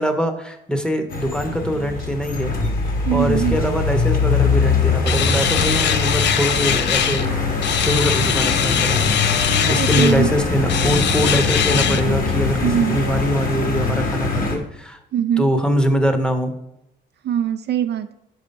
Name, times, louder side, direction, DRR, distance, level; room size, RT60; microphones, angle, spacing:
voice 1, 0.0-2.5 3.1-7.5 7.8-9.3 9.7-15.0 15.4-16.5, equal, 5° left, 6 dB, 0.9 m, -23 dB
sound 1, 1.1-14.6, left 4 dB, 45° left, 1.5 m, -22 dB
voice 2, 3.1-3.6 9.5-10.3 12.6-13.0 15.1-15.5 17.2-18.1, right 9 dB, 60° right, 10 dB, 0.4 m, -22 dB
sound 2, 5.1-7.3 7.6-10.2 10.7-12.0, left 9 dB, 65° left, 0.5 m, -22 dB
5.5 x 4.9 x 5.2 m, 0.81 s
cardioid pair, 90°, 20 cm